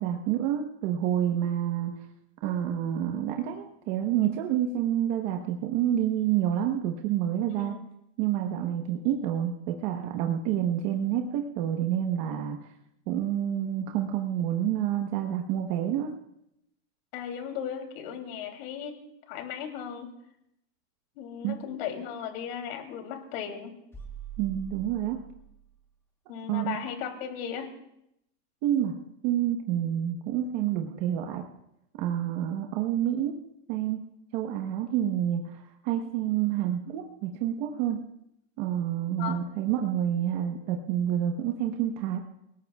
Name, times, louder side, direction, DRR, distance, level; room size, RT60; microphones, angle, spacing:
voice 1, 0.0-1.9 2.4-7.7 8.2-12.6 13.1-16.1 21.4-21.6 24.4-25.2 26.5-26.8 28.6-29.0 29.2-31.4 32.0-33.4 33.7-34.0 34.3-38.0 38.6-42.2, right 10 dB, 45° right, 3 dB, 1.2 m, -28 dB
voice 2, 17.1-19.0 19.3-20.1 21.2-23.7 26.3-27.7 39.2-39.4, left 8 dB, 55° left, 5 dB, 3.1 m, -36 dB
sound 1, 23.9-25.8, right 9 dB, 5° left, 1.2 m, -43 dB
28.0 x 18.5 x 2.4 m, 0.79 s
supercardioid pair, 165°, 35 cm